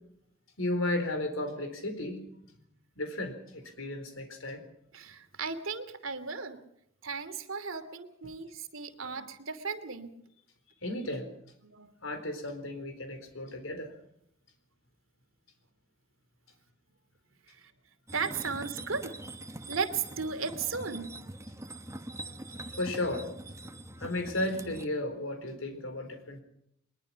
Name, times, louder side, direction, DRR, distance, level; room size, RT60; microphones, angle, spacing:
voice 1, 0.6-2.2 3.0-4.6 10.8-11.3 12.0-13.9 22.8-23.3 24.0-26.4, left 1 dB, 80° left, 6 dB, 4.2 m, -34 dB
voice 2, 4.9-6.6 7.0-10.1 11.6-11.9 17.5-17.7 18.1-19.1 19.7-21.0, right 5 dB, 85° right, 8 dB, 2.7 m, -35 dB
sound 1, 18.1-24.9, right 1 dB, 15° right, 1.2 m, -44 dB
22.5 x 20.5 x 5.8 m, 0.74 s
head